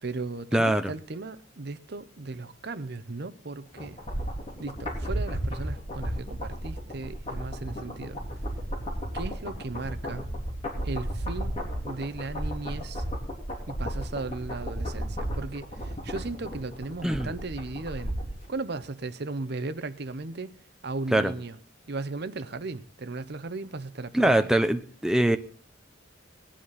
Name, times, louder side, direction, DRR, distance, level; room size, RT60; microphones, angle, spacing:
voice 1, 0.0-4.0 4.6-8.2 9.1-10.3 10.8-13.0 13.7-18.2 18.5-20.5 20.8-21.6 21.9-24.5, right 3 dB, 55° right, 0.7 m, -36 dB
voice 2, 0.5-0.9 17.0-17.3 21.1-21.3 24.1-25.4, right 1 dB, 5° right, 0.6 m, -23 dB
sound 1, 3.8-18.4 18.7-18.8, equal, 30° left, 3.7 m, -34 dB
19.5 x 10.0 x 4.1 m
head